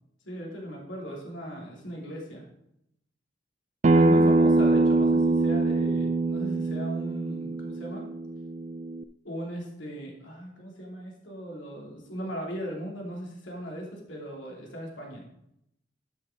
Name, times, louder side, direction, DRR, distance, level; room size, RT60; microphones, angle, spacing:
voice 1, 0.2-2.4 3.9-8.1 9.2-15.2, equal, 85° left, -1 dB, 3.1 m, -38 dB
Acoustic guitar, 3.8-9.0, right 2 dB, 35° right, 0.4 m, -23 dB
11.5 x 5.7 x 5.0 m, 0.77 s
head